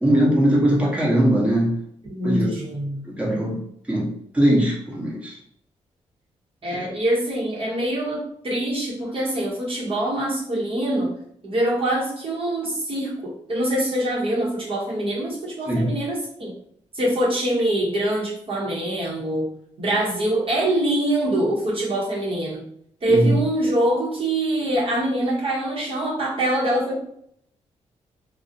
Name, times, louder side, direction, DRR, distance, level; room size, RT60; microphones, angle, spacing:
voice 1, 0.0-1.7 2.2-2.5 3.1-3.6 3.9-5.4 6.7-6.8 15.7-15.9 23.1-23.3, right 1 dB, 10° right, -4 dB, 0.8 m, -20 dB
voice 2, 2.1-3.0 6.6-11.1 11.4-16.5 16.9-22.7 23.0-27.0, right 1 dB, 45° right, -4 dB, 0.8 m, -24 dB
2.4 x 2.0 x 2.6 m, 0.68 s
cardioid pair, 65°, 12 cm